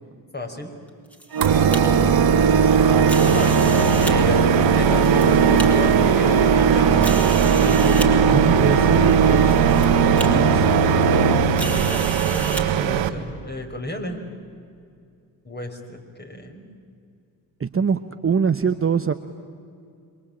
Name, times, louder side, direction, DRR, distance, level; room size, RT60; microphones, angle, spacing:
voice 1, 0.3-0.7 3.2-4.5 4.8-7.2 7.6-8.1 9.7-10.0 11.6-14.2 15.4-16.7, left 2 dB, 20° left, 3 dB, 5.7 m, -32 dB
sound 1, 0.9-1.8 3.0-4.1 4.8-5.7 6.3-6.4 7.0-8.1 9.0-9.1 9.5-9.9 10.2-10.3 11.6-12.6, equal, 5° left, 4.2 m, -33 dB
Organ, 1.3-12.3, right 5 dB, 45° right, 2.2 m, -18 dB
sound 2, 1.4-13.1, right 10 dB, 70° right, 1.6 m, -23 dB
voice 2, 8.3-9.6 9.9-10.8 17.6-19.1, right 6 dB, 25° right, 9 dB, 1.1 m, -23 dB
27.0 x 23.0 x 8.9 m, 2.3 s
hypercardioid pair, 50°, 48 cm